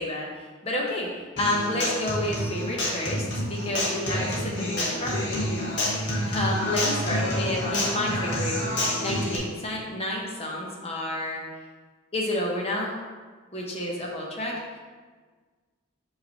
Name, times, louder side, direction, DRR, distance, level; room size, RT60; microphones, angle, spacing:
voice 1, 0.0-5.4 6.3-8.6 9.0-11.4 12.1-13.0 13.5-14.6, left 1 dB, 30° left, -2 dB, 1.0 m, -30 dB
Human voice / Acoustic guitar, 1.4-9.3, left 1 dB, 55° left, 1.4 m, -28 dB
5.5 x 3.3 x 5.6 m, 1.4 s
head